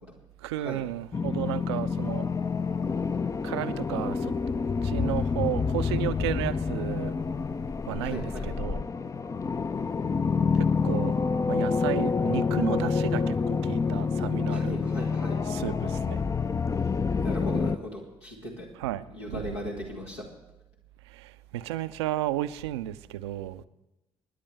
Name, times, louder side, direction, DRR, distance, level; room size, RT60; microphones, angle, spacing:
voice 1, 0.4-2.3 3.4-4.3 4.8-7.1 7.9-8.8 10.5-11.2 11.5-14.7 15.5-16.2 18.8-19.6 21.1-23.7, right 14 dB, 75° right, 0.5 m, -33 dB
sound 1, 1.1-17.8, left 5 dB, 25° left, 0.4 m, -28 dB
voice 2, 8.0-8.5 14.5-15.4 17.1-18.7 19.1-20.2, equal, 85° left, 2.3 m, -37 dB
28.0 x 10.0 x 3.3 m
figure-of-eight pair, 45°, 14 cm